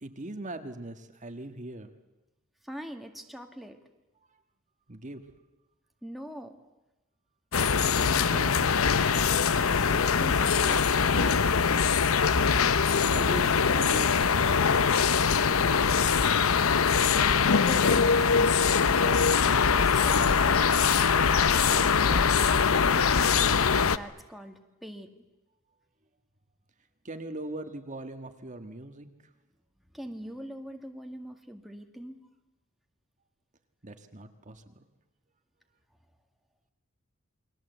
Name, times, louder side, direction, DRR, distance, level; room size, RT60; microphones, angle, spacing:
voice 1, 0.0-1.9 4.3-4.4 4.9-5.2 7.9-8.8 13.1-15.6 16.0-16.5 21.7-22.2 22.5-23.1 27.0-29.3 33.8-34.7, right 2 dB, 35° right, 7 dB, 1.6 m, -41 dB
voice 2, 2.6-3.8 6.0-6.5 9.3-11.4 17.6-19.2 19.6-20.3 23.8-25.2 29.9-32.2, equal, ahead, 4 dB, 1.9 m, -42 dB
sound 1, 7.5-24.0, left 6 dB, 75° left, 0.8 m, -23 dB
29.0 x 21.5 x 8.1 m, 1.0 s
head